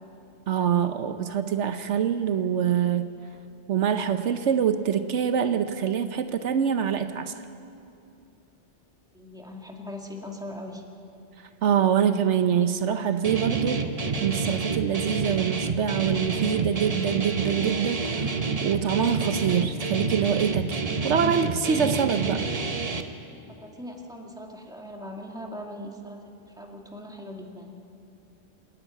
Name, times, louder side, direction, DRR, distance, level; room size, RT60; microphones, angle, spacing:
voice 1, 0.5-3.1 3.7-7.3 11.6-13.8 14.2-18.3 18.6-22.5, right 8 dB, 80° right, 9 dB, 1.1 m, -25 dB
voice 2, 9.1-10.8 23.3-27.7, left 1 dB, 5° right, 0 dB, 2.1 m, -40 dB
Guitar, 13.2-23.0, right 4 dB, 35° right, 1.0 m, -28 dB
27.5 x 10.5 x 9.1 m, 2.6 s
omnidirectional pair, 1.2 m